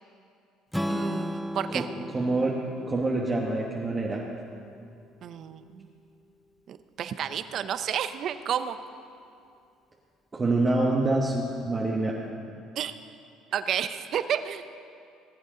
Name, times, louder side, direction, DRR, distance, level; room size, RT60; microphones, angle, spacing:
Strum, 0.7-4.9, equal, ahead, 0.4 m, -35 dB
voice 1, 0.9-1.9 5.2-5.9 6.7-8.8 12.8-12.9 13.5-14.6, right 9 dB, 55° right, 11 dB, 0.6 m, -31 dB
voice 2, 2.1-2.5 2.9-4.2 10.3-12.1, right 2 dB, 25° right, -2 dB, 1.2 m, -26 dB
19.5 x 8.2 x 3.8 m, 2.4 s
supercardioid pair, 95°, 0 cm